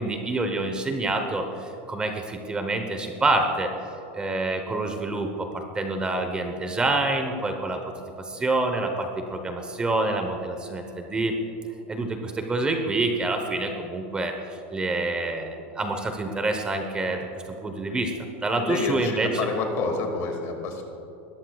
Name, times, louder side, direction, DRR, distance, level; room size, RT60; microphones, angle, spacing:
voice 1, 0.0-3.7 4.1-7.8 8.2-11.4 11.9-17.3 17.6-18.1 18.4-19.3, right 2 dB, 15° right, 5 dB, 1.0 m, -27 dB
voice 2, 18.5-20.8, left 4 dB, 45° left, 3 dB, 2.2 m, -28 dB
20.0 x 14.0 x 2.4 m, 3.0 s
supercardioid pair, 135°, 6 cm